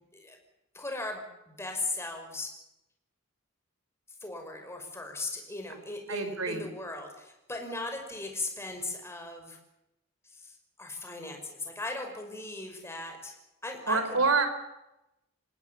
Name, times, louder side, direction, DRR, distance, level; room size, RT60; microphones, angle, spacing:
voice 1, 0.7-2.5 4.2-9.6 10.2-13.3 13.6-14.2, left 2 dB, 15° left, 3 dB, 5.6 m, -38 dB
voice 2, 6.1-6.7 13.9-14.5, right 4 dB, 85° right, 8 dB, 4.2 m, -26 dB
27.0 x 19.0 x 7.0 m, 0.90 s
head